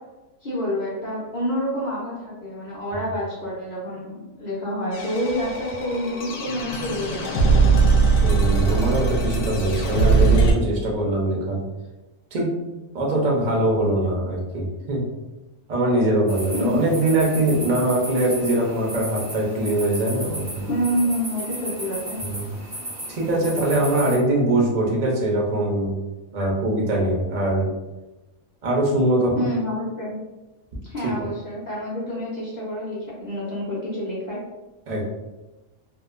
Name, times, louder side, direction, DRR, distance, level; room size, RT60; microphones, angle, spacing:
voice 1, 0.4-8.0 16.5-16.8 20.7-22.2 29.4-30.1 30.8-34.4, equal, 45° left, -7 dB, 0.6 m, -28 dB
sound 1, 4.9-10.5, right 4 dB, 85° left, 1.1 m, -20 dB
voice 2, 8.2-11.6 12.3-12.5 12.9-15.1 15.7-20.7 22.2-22.5 23.1-25.9 26.3-27.7 28.6-29.5 34.9-35.0, right 1 dB, 85° right, -2 dB, 0.3 m, -22 dB
sound 2, 16.3-24.2, right 1 dB, 20° right, 0.4 m, -35 dB
2.8 x 2.1 x 2.4 m, 1.1 s
omnidirectional pair, 1.5 m